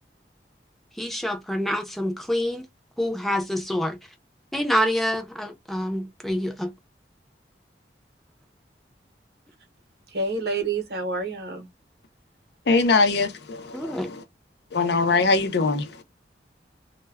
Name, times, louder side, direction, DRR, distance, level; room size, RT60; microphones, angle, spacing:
voice 1, 1.0-2.7 3.0-4.0 4.5-6.7 13.7-14.1, equal, ahead, 0.5 m, -26 dB
voice 2, 10.1-11.7, right 3 dB, 60° right, 0.8 m, -28 dB
voice 3, 12.7-14.1 14.7-16.0, left 3 dB, 70° left, 0.6 m, -22 dB
2.1 x 2.1 x 3.4 m
head